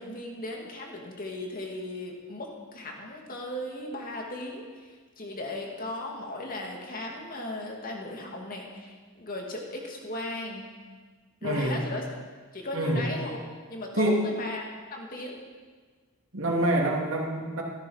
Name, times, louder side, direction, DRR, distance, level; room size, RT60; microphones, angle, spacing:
voice 1, 0.0-10.6 11.4-12.0 12.5-13.4 13.7-14.6 14.9-15.4, left 2 dB, 40° left, 0 dB, 2.4 m, -36 dB
voice 2, 11.4-11.8 12.7-13.0 13.9-14.3 16.3-17.6, right 1 dB, 65° right, -1 dB, 2.6 m, -26 dB
14.5 x 13.5 x 5.7 m, 1.5 s
head